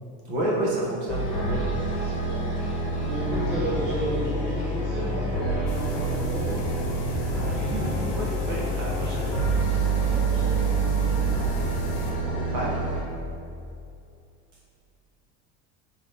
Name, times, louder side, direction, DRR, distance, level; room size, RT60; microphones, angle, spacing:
voice 1, 0.2-1.6 2.6-2.9 3.3-3.4 7.6-9.3 12.1-12.8, right 1 dB, 60° right, -4 dB, 1.0 m, -30 dB
sound 1, 1.1-13.0, right 3 dB, 5° left, 1.2 m, -27 dB
voice 2, 1.9-6.7 9.8-11.0, right 1 dB, 30° right, -5 dB, 0.4 m, -33 dB
sound 2, 5.7-12.1, left 1 dB, 55° left, 0.7 m, -35 dB
4.0 x 3.0 x 3.3 m, 2.5 s
cardioid pair, 170°, 30 cm